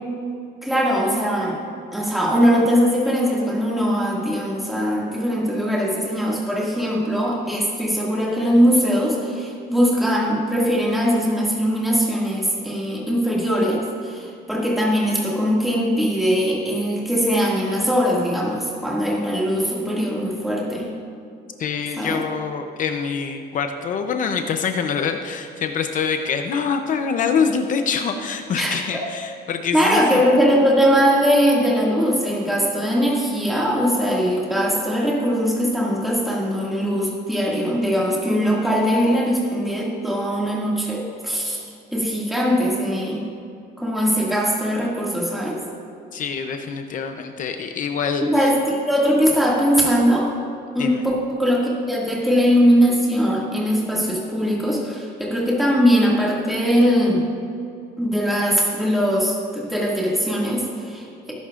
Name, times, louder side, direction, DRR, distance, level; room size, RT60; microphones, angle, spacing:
voice 1, 0.6-1.6 1.9-20.9 22.0-22.2 28.6-28.8 29.7-41.6 41.9-43.2 43.8-45.6 48.2-50.3 50.7-57.2 58.0-61.3, equal, ahead, -5 dB, 2.1 m, -20 dB
voice 2, 21.6-30.0 46.1-48.5 50.8-51.0, left 6 dB, 45° left, 6 dB, 0.7 m, -25 dB
19.5 x 11.0 x 2.5 m, 2.5 s
cardioid pair, 165°, 19 cm